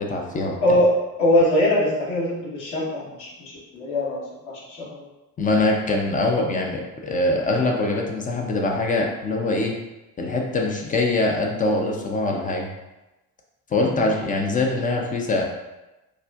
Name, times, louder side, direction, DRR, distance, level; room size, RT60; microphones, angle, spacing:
voice 1, 0.1-0.6 5.4-9.7 10.2-12.7 13.7-15.4, left 2 dB, 20° left, 0 dB, 0.4 m, -23 dB
voice 2, 0.6-5.0 13.8-14.0, left 1 dB, 60° left, -5 dB, 1.1 m, -22 dB
3.4 x 2.4 x 2.3 m, 1.0 s
figure-of-eight pair, 45°, 46 cm